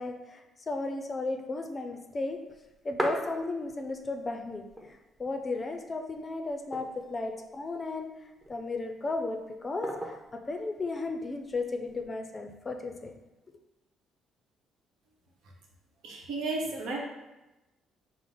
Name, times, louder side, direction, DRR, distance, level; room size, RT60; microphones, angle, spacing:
voice 1, 0.0-2.4 2.8-8.1 8.5-13.1, left 3 dB, 30° left, 4 dB, 0.4 m, -35 dB
sound 1, 2.5-4.0 4.3-4.4 4.6-5.4 5.9-6.0 6.5-7.3 8.0-8.6 9.8-10.4 11.5-12.1, equal, 15° right, 0.7 m, -37 dB
voice 2, 16.0-17.0, right 3 dB, 85° right, -1 dB, 0.9 m, -33 dB
4.9 x 2.0 x 3.8 m, 1.0 s
cardioid pair, 105°, 0 cm